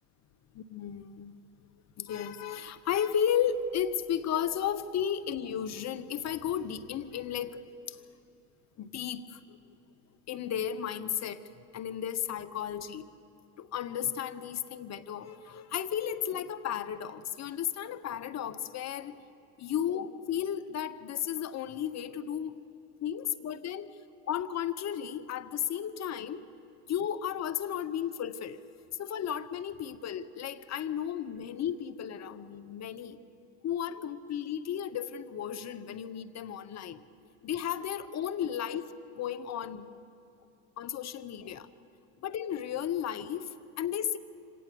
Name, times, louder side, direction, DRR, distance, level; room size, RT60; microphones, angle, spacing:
voice 1, 0.5-1.4 2.0-8.0 8.8-9.6 10.3-11.4 11.7-13.1 13.6-19.2 19.6-22.6 23.0-24.0 24.2-26.4 26.9-28.6 29.0-33.2 33.6-37.1 37.4-38.8 39.1-39.9 40.8-41.7 42.2-44.2, left 9 dB, 35° left, 14 dB, 1.1 m, -34 dB
25.5 x 18.0 x 7.0 m, 2.7 s
hypercardioid pair, 95°, 47 cm